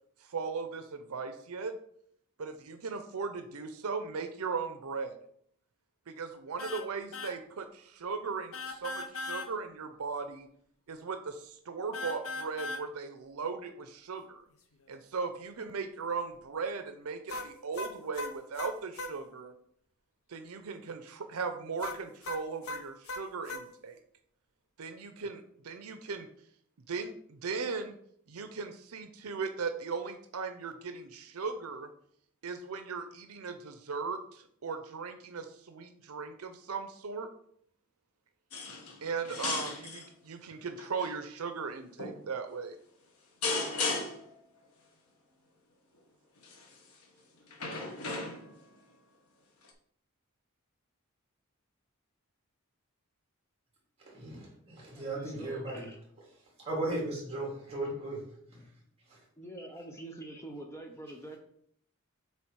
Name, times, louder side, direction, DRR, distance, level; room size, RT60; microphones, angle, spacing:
voice 1, 0.2-1.7 2.4-5.2 6.1-10.5 10.9-14.4 14.9-19.5 20.3-24.0 24.8-26.3 26.9-28.0 28.3-31.9 32.4-37.3 39.0-42.8, right 5 dB, 85° right, 7 dB, 0.6 m, -38 dB
sound 1, 6.6-6.9 7.1-7.4 8.5-9.5 11.9-12.8 17.3-19.2 21.8-23.6, left 2 dB, 70° left, 0.7 m, -38 dB
sound 2, 38.5-39.0 39.2-40.1 40.8-41.1 42.0-42.2 43.4-44.3 46.4-46.7 47.5-48.6 49.7-49.8, left 3 dB, 85° left, 1.2 m, -35 dB
voice 2, 54.0-55.9 56.6-58.2 58.5-58.7 59.1-59.2, right 2 dB, 30° right, -4 dB, 2.9 m, -36 dB
voice 3, 54.9-56.0 59.4-61.4, right 2 dB, 15° left, 2 dB, 0.6 m, -45 dB
7.5 x 3.6 x 4.6 m, 0.67 s
head